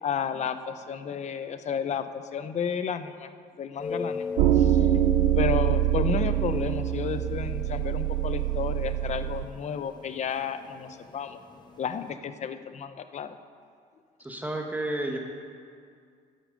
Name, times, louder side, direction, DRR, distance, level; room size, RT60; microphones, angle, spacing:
voice 1, 0.0-3.3 3.6-4.3 4.5-11.4 11.8-13.4, left 7 dB, 45° left, 10 dB, 0.6 m, -32 dB
sound 1, 3.8-12.1, left 5 dB, 25° left, 1.1 m, -39 dB
sound 2, 4.4-9.5, right 13 dB, 90° right, 0.5 m, -24 dB
voice 2, 14.2-15.2, right 1 dB, 10° right, 2 dB, 1.2 m, -31 dB
11.5 x 8.3 x 5.1 m, 2.2 s
cardioid pair, 110°, 17 cm